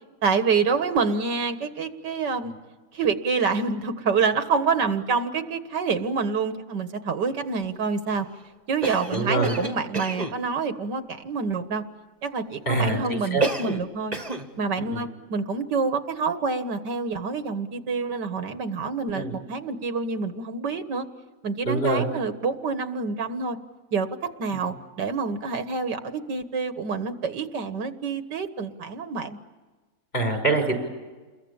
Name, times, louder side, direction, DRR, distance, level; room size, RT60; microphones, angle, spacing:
voice 1, 0.2-2.5 2.9-8.3 8.7-11.8 12.2-14.1 14.6-21.1 21.4-23.6 23.9-24.1 24.4-29.4, right 5 dB, 85° right, 9 dB, 2.1 m, -27 dB
Cough, 8.8-10.4 13.4-13.9 14.1-14.5, right 3 dB, 25° right, 1.7 m, -29 dB
voice 2, 9.1-9.6 12.7-13.4 14.9-15.0 19.1-19.3 21.6-22.0 24.5-24.7 30.1-30.7, right 2 dB, 30° left, 4 dB, 6.2 m, -24 dB
29.5 x 22.0 x 8.7 m, 1.3 s
omnidirectional pair, 1.8 m